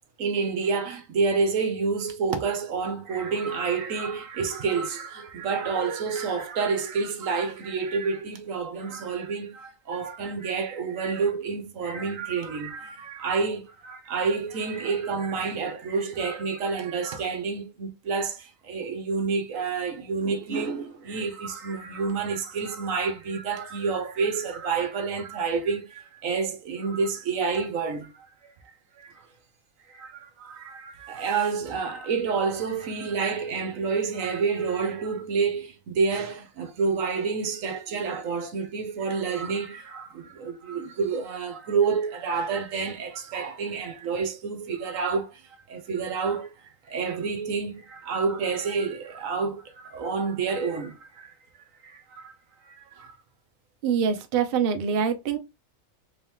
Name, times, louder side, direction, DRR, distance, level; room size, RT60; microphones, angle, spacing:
voice 1, 0.2-28.5 29.0-29.2 29.9-45.4 45.7-46.5 46.9-51.3 51.8-52.3 52.7-53.1, right 5 dB, 75° right, 1.2 m, -29 dB
voice 2, 53.8-55.4, right 7 dB, 55° right, 0.8 m, -24 dB
3.6 x 2.9 x 3.4 m
omnidirectional pair, 1.4 m